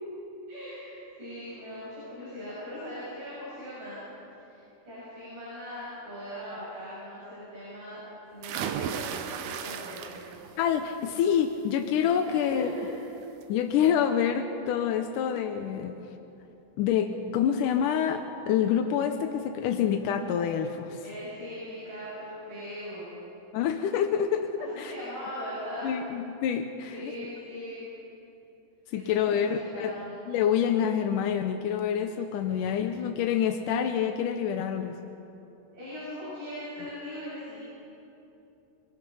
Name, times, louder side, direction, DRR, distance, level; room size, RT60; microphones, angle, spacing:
voice 1, 0.5-0.9 1.2-4.0 4.4-8.0 8.3-10.5 12.2-12.8 21.0-23.3 24.6-25.9 26.9-27.9 28.9-29.4 29.7-30.2 32.5-32.6 35.7-37.6, equal, 40° right, -10 dB, 8.6 m, -40 dB
sound 1, 8.4-10.5 10.9-11.3 12.7-12.8 13.2-13.3, right 8 dB, 75° right, 2.8 m, -35 dB
voice 2, 10.6-12.7 13.5-16.0 16.8-21.0 23.5-24.5 24.8-24.9 25.8-27.1 28.9-29.9 30.3-35.0, left 8 dB, 80° left, 5 dB, 1.9 m, -27 dB
25.5 x 21.5 x 5.7 m, 2.9 s
omnidirectional pair, 4.7 m